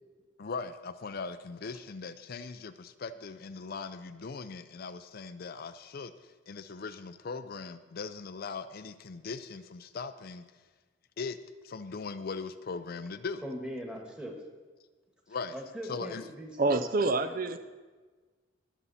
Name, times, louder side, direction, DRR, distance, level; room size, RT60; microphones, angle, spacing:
voice 1, 0.4-6.1 6.5-10.4 11.2-11.4 11.6-13.4 15.3-15.6 15.9-16.2, left 4 dB, 50° left, 10 dB, 0.5 m, -39 dB
voice 2, 13.4-14.4 15.5-17.6, equal, 5° right, 2 dB, 1.6 m, -41 dB
voice 3, 16.6-17.6, right 3 dB, 45° right, 10 dB, 0.5 m, -27 dB
21.0 x 7.1 x 4.2 m, 1.4 s
head